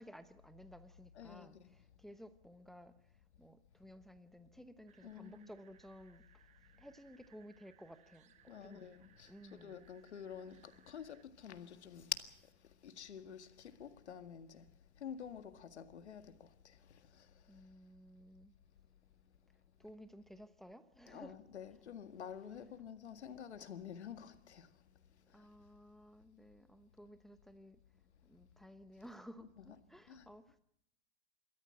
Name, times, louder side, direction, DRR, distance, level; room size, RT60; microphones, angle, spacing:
voice 1, 0.0-2.9 3.4-6.5 6.8-8.8 9.3-9.8 17.5-18.5 19.8-21.4 25.3-27.8 28.3-30.6, equal, ahead, 0.9 m, -56 dB
voice 2, 1.1-1.7 5.0-5.5 8.5-14.7 15.0-17.6 21.1-25.5 29.6-30.3, left 8 dB, 85° left, 1.9 m, -49 dB
sound 1, 4.9-11.3, right 11 dB, 20° right, 0.9 m, -68 dB
27.0 x 14.0 x 7.7 m
hypercardioid pair, 140°, 33 cm